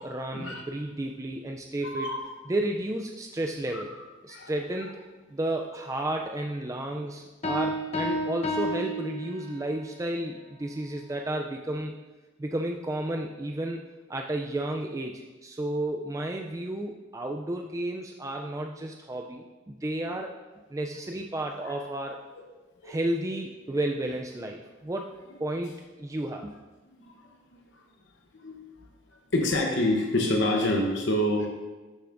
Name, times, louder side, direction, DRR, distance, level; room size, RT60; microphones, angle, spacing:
voice 1, 0.0-2.1 2.5-3.9 4.2-5.0 5.3-11.9 12.4-13.8 14.1-20.4 20.7-22.2 22.8-25.1 25.4-25.7 26.0-26.5, right 1 dB, 15° right, 2 dB, 0.3 m, -32 dB
voice 2, 1.8-2.3 3.7-4.5 21.6-21.8 22.8-23.0 27.0-27.1 27.7-27.8 28.3-28.6 29.3-31.5, left 1 dB, 65° left, 1 dB, 0.9 m, -27 dB
sound 1, 7.4-9.8, equal, 30° left, 0.8 m, -31 dB
12.5 x 6.8 x 2.6 m, 1.2 s
head